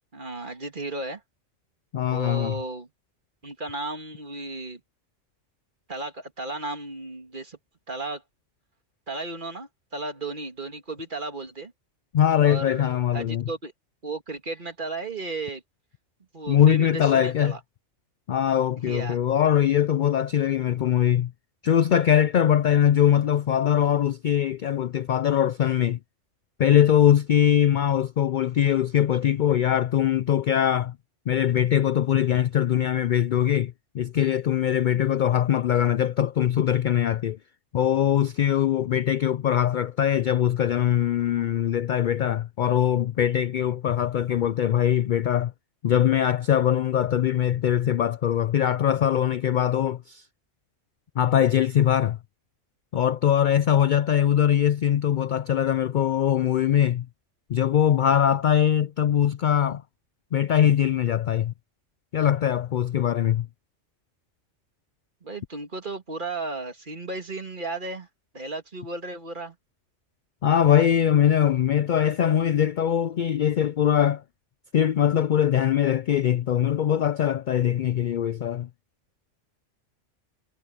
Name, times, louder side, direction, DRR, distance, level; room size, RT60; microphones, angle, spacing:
voice 1, 0.1-1.2 2.1-2.9 3.4-4.8 5.9-7.6 7.9-8.2 9.1-11.7 12.4-13.7 14.0-15.6 16.3-17.6 18.9-19.2 65.2-68.1 68.3-69.6, right 2 dB, 40° right, 2.3 m, -34 dB
voice 2, 1.9-2.5 12.1-13.4 16.5-17.6 18.3-21.3 21.6-26.0 26.6-31.0 31.3-37.4 37.7-45.5 45.8-50.2 51.2-52.2 52.9-57.1 57.5-59.8 60.3-61.5 62.1-63.5 70.4-74.2 74.7-78.7, left 10 dB, 60° left, 0.5 m, -22 dB
omnidirectional pair, 1.3 m